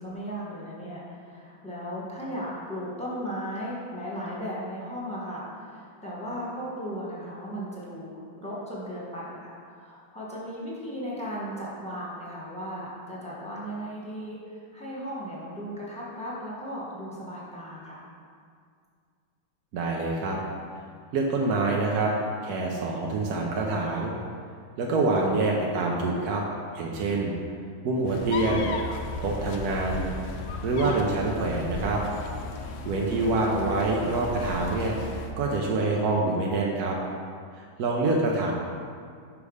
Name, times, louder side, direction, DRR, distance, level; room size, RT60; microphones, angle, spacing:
voice 1, 0.0-18.0 30.8-31.0, equal, 5° left, -7 dB, 1.4 m, -36 dB
voice 2, 19.7-20.4 21.1-22.1 22.4-24.1 24.8-26.4 26.7-27.3 27.8-28.7 29.2-30.1 30.6-32.0 32.8-34.9 35.4-37.0 37.5-38.5, right 3 dB, 65° right, -2 dB, 1.1 m, -26 dB
sound 1, 28.1-35.3, left 3 dB, 70° left, 1.0 m, -35 dB
6.3 x 5.2 x 4.9 m, 2.2 s
omnidirectional pair, 2.1 m